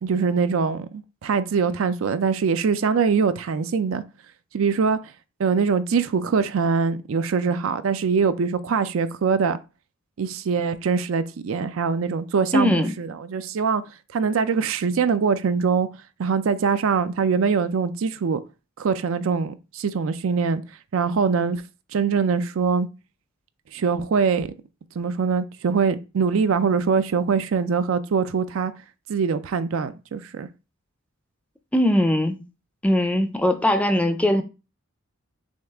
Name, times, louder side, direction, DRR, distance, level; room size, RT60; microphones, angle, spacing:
voice 1, 0.0-4.0 4.5-5.0 5.4-9.6 10.2-13.8 14.1-15.9 16.2-18.4 18.8-20.6 20.9-21.6 21.9-22.9 23.7-24.5 25.0-28.7 29.1-30.5, right 5 dB, 65° right, 0.4 m, -23 dB
voice 2, 12.5-13.0 31.7-32.5 32.8-34.4, left 1 dB, 5° left, 0.4 m, -20 dB
6.3 x 2.4 x 3.4 m
head